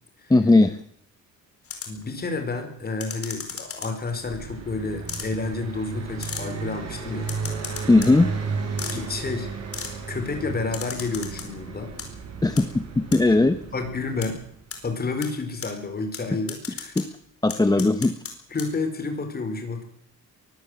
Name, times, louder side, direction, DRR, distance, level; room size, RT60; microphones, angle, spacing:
voice 1, 0.3-0.8 7.9-8.3 12.4-13.6 17.0-17.1 17.4-18.1, left 2 dB, 10° left, 10 dB, 1.0 m, -18 dB
sound 1, 1.6-2.0 3.0-4.1 5.1-5.3 6.2-6.5 7.2-8.1 8.8-9.0 9.7-9.9 10.7-11.5 11.8-12.1 12.6-12.7 13.1-13.2 14.2-14.3 14.7-14.8 15.2-15.3 15.6-15.7 16.1-16.2 16.5-17.0 17.5-18.3 18.6-18.7, left 6 dB, 45° left, 4.8 m, -34 dB
voice 2, 1.9-7.3 8.9-9.5 10.1-11.9 13.7-14.4 14.8-16.9 17.8-17.9 18.5-19.8, left 3 dB, 30° left, 7 dB, 4.5 m, -30 dB
Car passing by, 4.1-14.7, right 5 dB, 55° right, 7.2 m, -34 dB
23.0 x 15.0 x 8.0 m, 0.66 s
cardioid pair, 145°, 31 cm